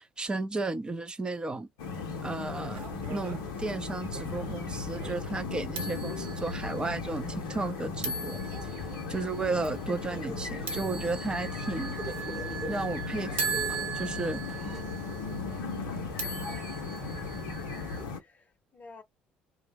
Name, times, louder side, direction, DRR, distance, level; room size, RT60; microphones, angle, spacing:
voice 1, 0.0-1.7 2.2-2.8 3.1-8.8 9.1-12.0 12.7-14.4, right 3 dB, 20° right, 0.6 m, -34 dB
sound 1, 1.8-18.2, left 5 dB, 65° left, 0.6 m, -37 dB
sound 2, 2.7-18.0, right 5 dB, 55° right, 1.0 m, -39 dB
sound 3, 8.0-14.8, equal, 5° right, 1.0 m, -48 dB
voice 2, 16.2-17.2 18.1-19.0, left 3 dB, 35° left, 0.7 m, -53 dB
2.2 x 2.0 x 3.4 m
figure-of-eight pair, 50°, 5 cm